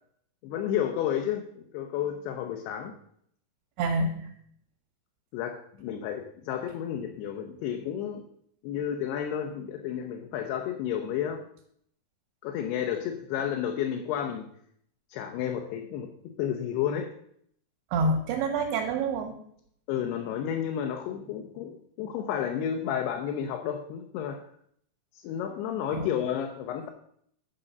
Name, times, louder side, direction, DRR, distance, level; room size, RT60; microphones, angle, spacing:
voice 1, 0.4-3.0 5.3-8.2 8.6-11.4 12.4-14.5 15.1-16.1 16.4-17.1 19.9-24.4 25.1-26.9, left 9 dB, 80° left, 4 dB, 2.7 m, -31 dB
voice 2, 3.8-4.3 17.9-19.3 25.9-26.1, right 3 dB, 75° right, 0 dB, 3.1 m, -27 dB
9.8 x 5.3 x 6.6 m, 0.67 s
omnidirectional pair, 4.8 m